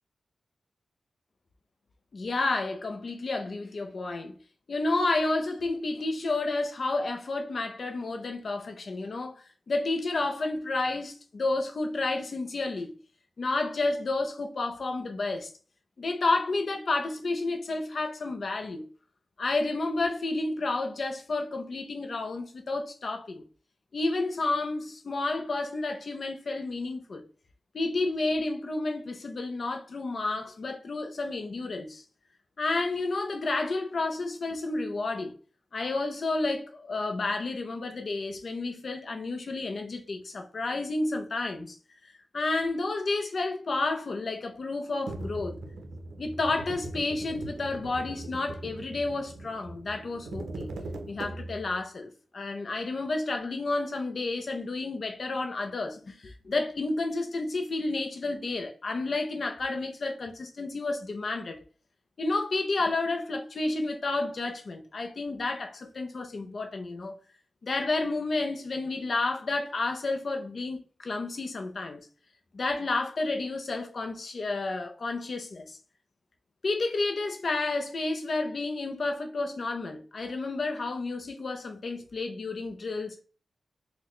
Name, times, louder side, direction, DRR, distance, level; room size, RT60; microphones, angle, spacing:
voice 1, 2.1-4.3 4.7-9.3 9.7-13.0 13.4-15.5 16.0-18.9 19.4-23.4 23.9-27.2 27.7-32.0 32.6-35.4 35.7-41.8 42.0-45.6 46.2-50.7 51.1-61.6 62.2-67.2 67.6-72.1 72.5-75.8 76.6-83.2, left 3 dB, 45° left, 0.5 m, -31 dB
sound 1, 45.1-51.8, right 2 dB, 80° right, 0.5 m, -40 dB
4.0 x 2.1 x 3.0 m
wide cardioid pair, 155°, 0 cm